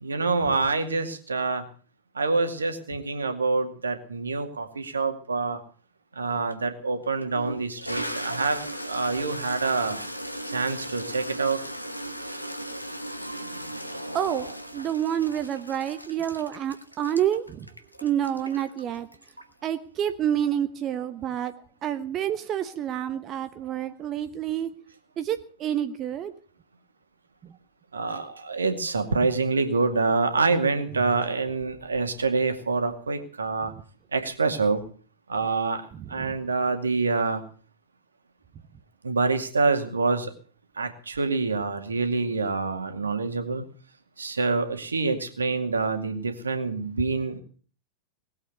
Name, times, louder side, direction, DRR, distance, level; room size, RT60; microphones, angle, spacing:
voice 1, 0.0-1.6 2.1-5.6 6.2-10.0 10.5-11.6 27.9-33.7 34.1-34.8 35.3-35.8 36.1-37.4 39.0-40.3 40.8-43.7 44.2-47.4, right 4 dB, 75° right, 8 dB, 2.2 m, -26 dB
Toilet flush, 6.5-6.6 7.2-19.7, equal, 90° left, 1.4 m, -37 dB
voice 2, 14.1-17.7 18.0-19.1 19.6-21.5 21.8-24.7 25.2-26.3 35.9-36.4, right 10 dB, 30° right, 10 dB, 1.0 m, -28 dB
20.0 x 8.3 x 8.1 m, 0.42 s
figure-of-eight pair, 90°, 0 cm